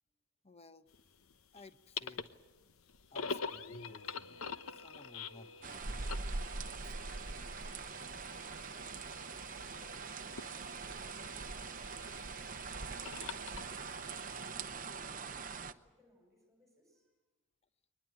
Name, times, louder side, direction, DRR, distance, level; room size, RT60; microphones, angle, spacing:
voice 1, 0.4-0.9 1.5-2.4 3.1-6.2 6.8-6.9, left 3 dB, 30° left, 12 dB, 0.8 m, -57 dB
sound 1, 0.9-14.5, left 5 dB, 80° left, 1.0 m, -46 dB
sound 2, 5.6-15.7, right 4 dB, 40° right, 0.8 m, -43 dB
voice 2, 8.7-17.2, equal, ahead, 1 dB, 5.7 m, -68 dB
22.5 x 20.5 x 8.9 m, 1.2 s
head